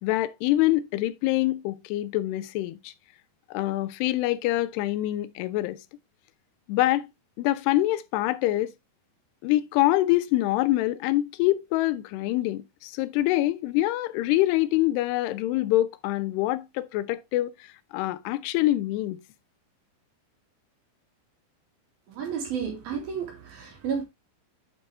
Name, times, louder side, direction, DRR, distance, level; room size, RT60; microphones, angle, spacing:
voice 1, 0.0-2.9 3.5-5.8 6.7-7.1 7.4-8.7 9.4-17.5 17.9-19.2, left 16 dB, 90° left, 2.7 m, -25 dB
voice 2, 22.1-24.0, right 7 dB, 65° right, 4.2 m, -32 dB
9.2 x 5.3 x 3.3 m
omnidirectional pair, 4.7 m